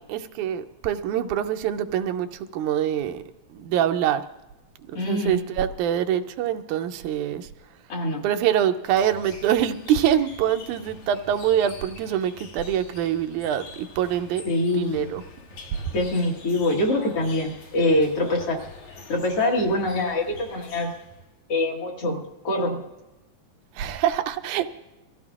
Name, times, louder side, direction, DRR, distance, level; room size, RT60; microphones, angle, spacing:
voice 1, 0.0-2.3 2.5-3.2 3.5-4.2 4.9-7.5 8.2-14.4 14.8-15.2 23.8-24.7, right 10 dB, 90° right, 8 dB, 2.1 m, -24 dB
voice 2, 4.9-5.5 7.9-8.2 14.4-15.1 15.9-18.6 19.1-20.9 21.5-22.8, left 1 dB, 55° left, 0 dB, 2.3 m, -24 dB
sound 1, 8.9-21.3, left 3 dB, 80° left, 2.8 m, -45 dB
23.5 x 15.0 x 2.4 m, 1.0 s
omnidirectional pair, 3.4 m